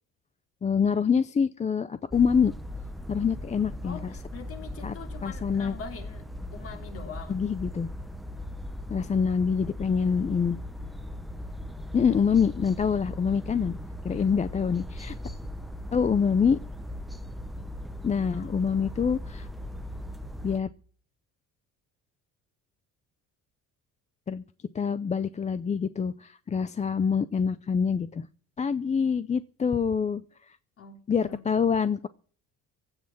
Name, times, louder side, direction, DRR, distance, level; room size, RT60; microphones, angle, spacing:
voice 1, 0.6-2.5 3.1-4.0 4.8-5.0 5.2-5.8 7.3-7.9 8.9-10.6 11.9-13.8 14.0-15.2 15.9-16.6 18.0-19.5 20.4-20.7 24.3-24.4 24.7-28.3 28.6-30.2 31.1-32.1, left 6 dB, 20° left, 0.5 m, -25 dB
sound 1, 2.1-20.6, left 1 dB, ahead, 0.9 m, -38 dB
voice 2, 3.8-7.4 14.1-14.4 18.3-18.7 30.8-31.5, left 5 dB, 45° left, 3.0 m, -44 dB
16.0 x 6.4 x 9.0 m
cardioid pair, 135°, 32 cm